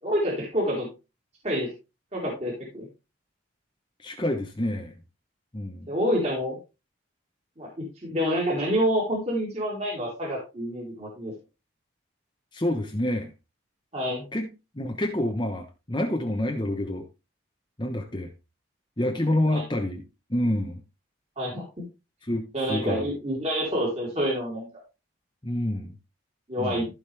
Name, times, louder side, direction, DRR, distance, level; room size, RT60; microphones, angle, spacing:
voice 1, 0.0-0.9 1.4-1.7 2.1-2.9 5.9-6.6 7.6-11.3 13.9-14.2 19.5-19.6 21.4-21.6 22.5-24.7 26.5-26.9, equal, 35° right, 3.8 m, -27 dB
voice 2, 4.0-4.9 5.5-5.9 12.5-13.3 14.3-14.5 14.8-17.0 17.8-18.3 19.0-20.0 20.3-20.8 22.2-23.0 25.4-25.9 26.6-26.8, left 1 dB, 25° left, 1.1 m, -27 dB
15.0 x 5.2 x 3.5 m
head